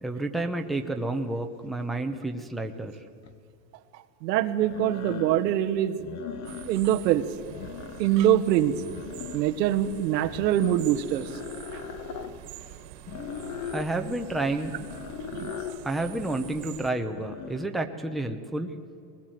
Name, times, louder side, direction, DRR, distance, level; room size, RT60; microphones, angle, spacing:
voice 1, 0.0-2.9 13.7-14.8 15.8-18.7, right 2 dB, ahead, 4 dB, 0.8 m, -30 dB
sound 1, 3.2-3.3 4.6-5.5 6.0-7.0 7.4-8.3 8.7-9.7 10.2-12.3 13.1-13.9 14.7-15.8 17.0-17.7, left 7 dB, 35° left, 1.3 m, -39 dB
voice 2, 4.2-6.1 6.7-7.3 8.0-8.8 9.3-11.4 11.7-11.8 15.3-15.5 16.0-16.1, right 11 dB, 90° right, 8 dB, 1.4 m, -24 dB
sound 2, 6.4-16.9, right 11 dB, 75° right, 2.2 m, -45 dB
21.0 x 20.0 x 7.8 m, 2.3 s
supercardioid pair, 140°, 49 cm